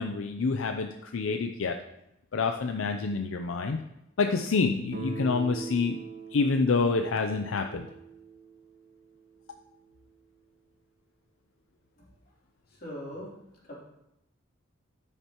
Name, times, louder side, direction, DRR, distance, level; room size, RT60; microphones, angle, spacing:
voice 1, 0.0-1.8 2.3-3.8 4.2-6.0 6.3-7.9, left 4 dB, 85° left, 5 dB, 0.5 m, -27 dB
Guitar, 4.9-9.7, right 4 dB, 45° right, 1.2 m, -42 dB
voice 2, 12.7-13.3 13.6-13.7, equal, 50° left, -5 dB, 3.2 m, -40 dB
12.5 x 6.7 x 3.0 m, 0.84 s
head